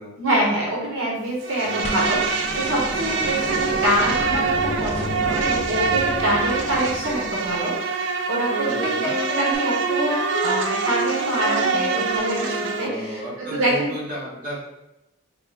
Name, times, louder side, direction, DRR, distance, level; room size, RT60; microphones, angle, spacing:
voice 1, 0.2-13.9, right 1 dB, 75° right, -4 dB, 0.9 m, -26 dB
Insect, 1.4-12.9, right 5 dB, 60° right, 0.3 m, -25 dB
voice 2, 1.6-2.2 8.6-9.2 12.8-14.6, equal, 40° right, -6 dB, 1.2 m, -34 dB
sound 1, 1.8-8.0 9.5-9.6, left 1 dB, 30° left, 0.4 m, -32 dB
Wind instrument woodwind instrument, 8.5-13.5, right 1 dB, 60° left, 0.9 m, -30 dB
4.3 x 2.3 x 3.3 m, 0.93 s
head